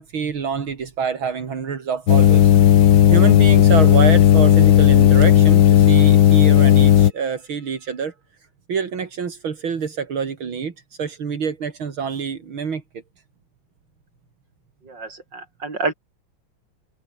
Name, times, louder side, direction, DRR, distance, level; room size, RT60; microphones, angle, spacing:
voice 1, 0.0-8.1 8.7-12.8, right 6 dB, 75° right, 3.3 m, -26 dB
sound 1, 2.1-7.1, left 10 dB, 65° left, 1.6 m, -12 dB
voice 2, 14.8-15.9, right 3 dB, 60° right, 5.4 m, -28 dB
omnidirectional pair, 2.2 m